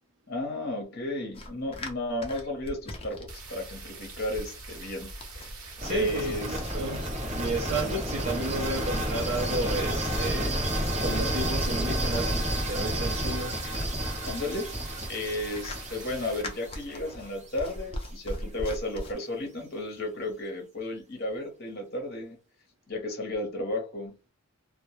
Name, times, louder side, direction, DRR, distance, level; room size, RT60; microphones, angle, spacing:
voice 1, 0.3-5.1 5.9-6.6 7.8-7.9 14.2-14.7 15.1-22.4 22.9-24.3, left 1 dB, 45° left, 0.8 m, -33 dB
sound 1, 1.3-19.1, left 1 dB, 25° left, 0.4 m, -42 dB
sound 2, 3.3-16.4, right 3 dB, 85° right, 0.8 m, -44 dB
sound 3, 5.8-17.7, right 1 dB, 30° right, 0.8 m, -31 dB
voice 2, 5.8-13.6 14.0-14.2, right 2 dB, 60° right, 0.5 m, -33 dB
2.2 x 2.1 x 2.9 m
head